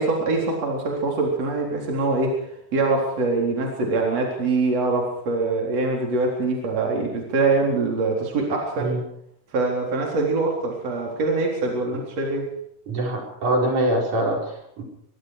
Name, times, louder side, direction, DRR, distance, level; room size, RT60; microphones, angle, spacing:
voice 1, 0.0-2.4 2.7-8.9 9.5-12.5, right 3 dB, 55° right, 0 dB, 5.0 m, -23 dB
voice 2, 12.9-14.8, right 1 dB, 75° right, 0 dB, 6.4 m, -24 dB
23.5 x 23.5 x 4.9 m, 0.68 s
omnidirectional pair, 3.5 m